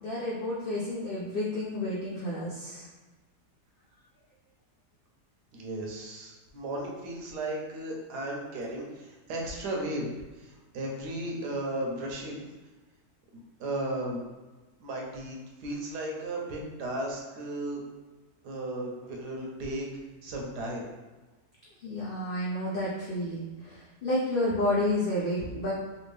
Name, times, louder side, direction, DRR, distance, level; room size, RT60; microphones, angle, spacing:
voice 1, 0.0-2.9 21.8-25.7, left 1 dB, 80° left, -6 dB, 0.5 m, -30 dB
voice 2, 5.5-10.1 10.4-12.4 13.6-14.2 14.8-17.8 18.4-19.9 20.2-20.8, right 1 dB, 80° right, -1 dB, 1.3 m, -35 dB
3.4 x 2.5 x 3.2 m, 1.2 s
omnidirectional pair, 1.8 m